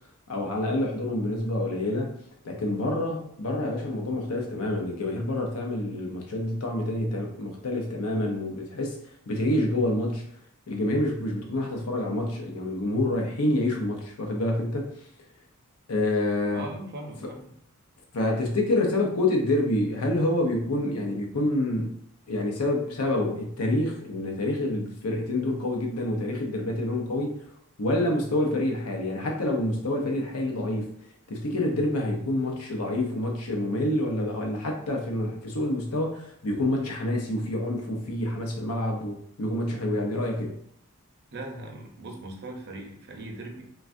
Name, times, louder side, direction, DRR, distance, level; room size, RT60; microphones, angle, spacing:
voice 1, 0.3-2.2 2.4-9.0 9.3-10.3 10.7-14.9 15.9-16.7 18.1-22.0 22.3-27.4 27.8-30.9 31.3-40.6, left 1 dB, 80° left, 0.6 m, -27 dB
voice 2, 16.5-17.5 41.3-43.6, right 1 dB, 50° right, 0.6 m, -39 dB
3.3 x 2.3 x 2.5 m
head